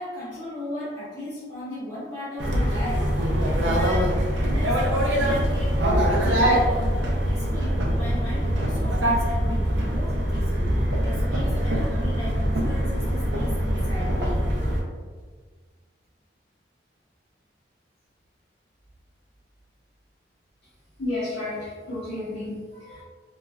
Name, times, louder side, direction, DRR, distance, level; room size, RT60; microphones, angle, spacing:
voice 1, 0.0-14.5, left 1 dB, 15° left, -18 dB, 1.3 m, -37 dB
sound 1, 2.4-14.8, equal, 85° right, 0.5 m, -23 dB
voice 2, 21.0-23.0, left 2 dB, 60° left, -10 dB, 0.7 m, -32 dB
3.0 x 2.2 x 2.3 m, 1.5 s
head